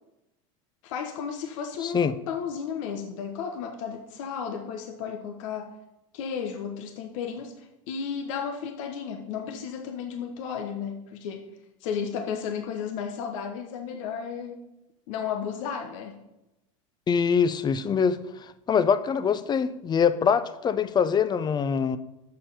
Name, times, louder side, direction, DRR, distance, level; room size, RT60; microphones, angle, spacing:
voice 1, 0.8-5.8 6.1-11.5 11.8-14.7 15.1-16.2, left 7 dB, 70° left, 1.0 m, -33 dB
voice 2, 17.1-18.2 18.7-22.0, left 6 dB, 25° left, 0.6 m, -23 dB
6.9 x 5.7 x 5.5 m
hypercardioid pair, 105°, 17 cm